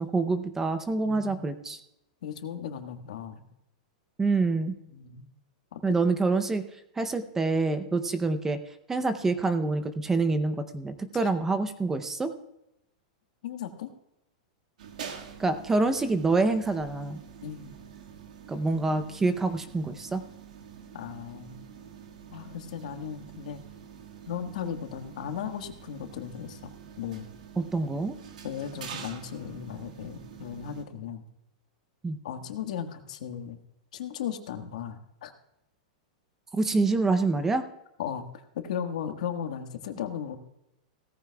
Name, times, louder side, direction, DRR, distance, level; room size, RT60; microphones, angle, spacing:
voice 1, 0.0-1.8 4.2-4.7 5.8-6.6 7.0-8.6 8.9-12.3 15.4-17.2 18.5-20.2 27.6-28.2 32.0-32.2 36.5-37.6, right 3 dB, 10° right, 10 dB, 0.7 m, -26 dB
voice 2, 1.0-1.6 2.2-3.4 4.9-5.3 5.7-5.9 11.1-11.3 13.4-13.9 17.4-17.8 20.9-21.6 22.3-23.6 24.3-27.3 28.4-31.3 32.2-33.6 33.9-35.3 38.0-38.2 38.5-40.4, left 8 dB, 70° left, 6 dB, 1.5 m, -36 dB
sound 1, 14.8-30.8, right 7 dB, 90° right, 1.8 m, -46 dB
17.5 x 14.5 x 2.3 m, 0.84 s
supercardioid pair, 160°, 4 cm